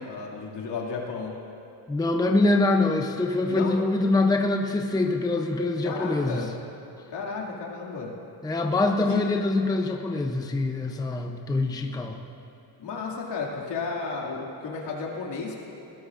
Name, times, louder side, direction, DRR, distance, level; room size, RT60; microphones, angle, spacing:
voice 1, 0.0-1.4 3.5-3.8 5.8-6.5 7.1-8.1 9.1-9.2 12.8-15.6, left 4 dB, 75° left, -2 dB, 2.5 m, -33 dB
voice 2, 1.9-6.4 8.4-12.2, left 2 dB, 10° left, 3 dB, 0.6 m, -24 dB
20.5 x 16.5 x 2.5 m, 3.0 s
cardioid pair, 130°, 43 cm